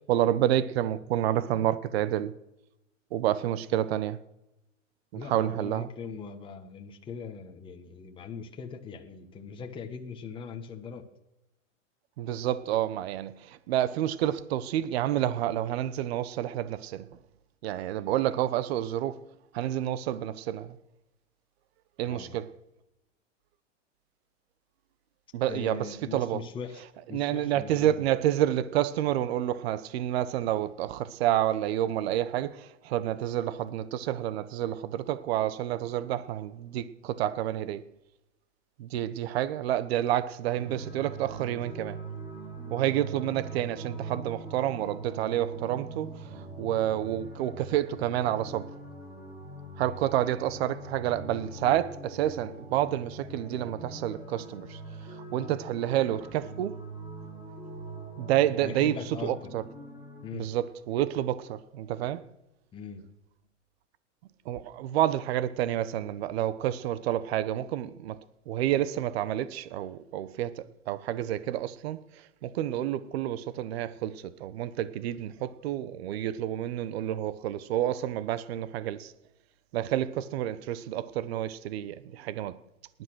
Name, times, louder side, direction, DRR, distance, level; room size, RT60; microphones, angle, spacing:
voice 1, 0.1-2.3 3.1-4.2 5.1-5.9 12.2-13.3 13.7-17.1 17.6-19.2 19.5-20.7 22.0-22.5 25.3-26.4 27.1-37.8 38.8-42.0 42.7-46.1 46.6-48.7 49.8-54.8 55.3-56.8 58.2-58.9 59.2-59.6 60.3-62.2 64.5-68.2 68.5-72.0 72.4-79.1 79.7-82.6, right 12 dB, 55° right, 1.1 m, -29 dB
voice 2, 5.1-11.0 22.1-22.4 25.5-28.1 58.6-59.5 60.2-60.5 62.7-63.0, left 6 dB, 15° left, 1.3 m, -41 dB
sound 1, 40.6-60.3, right 3 dB, 10° right, 7.1 m, -42 dB
19.0 x 11.0 x 6.3 m
hypercardioid pair, 145°, 38 cm